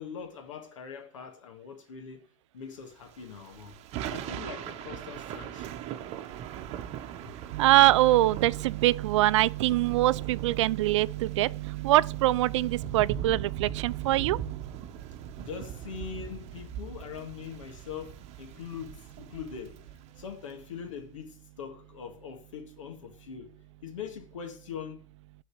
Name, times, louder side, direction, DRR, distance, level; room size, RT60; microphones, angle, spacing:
voice 1, 0.0-2.3 2.5-3.8 4.1-5.7 7.2-7.3 15.4-19.8 20.2-23.5 23.8-25.0, left 7 dB, 80° left, 1.9 m, -42 dB
Thunder / Rain, 3.0-20.6, right 10 dB, 40° right, 0.9 m, -41 dB
voice 2, 7.5-14.7, right 16 dB, 70° right, 0.4 m, -24 dB
8.3 x 4.2 x 7.2 m
hypercardioid pair, 110°, 16 cm